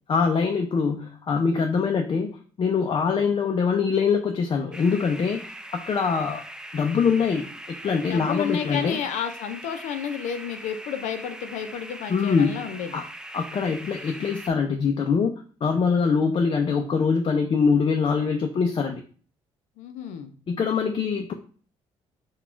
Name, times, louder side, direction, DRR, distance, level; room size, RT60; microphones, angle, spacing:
voice 1, 0.1-6.4 6.7-7.5 7.8-9.0 12.1-12.6 12.9-13.1 13.3-15.3 15.6-19.0 20.5-21.3, left 5 dB, 45° left, 4 dB, 0.5 m, -23 dB
sound 1, 4.7-14.5, right 1 dB, 5° right, 0.5 m, -41 dB
voice 2, 8.1-12.9 19.8-20.3, left 8 dB, 90° left, 8 dB, 0.6 m, -31 dB
4.1 x 2.3 x 4.4 m, 0.42 s
cardioid pair, 80°, 12 cm